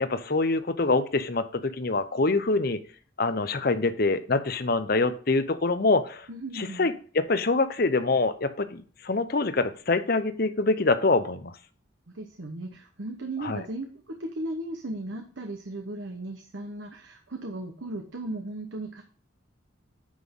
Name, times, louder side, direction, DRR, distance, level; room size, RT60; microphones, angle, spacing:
voice 1, 0.0-2.8 3.2-6.3 6.6-11.5 13.4-13.6, left 3 dB, 50° left, 12 dB, 0.8 m, -25 dB
voice 2, 6.3-6.9 12.1-19.0, right 2 dB, 70° right, 3 dB, 1.0 m, -36 dB
9.5 x 5.9 x 3.7 m, 0.43 s
head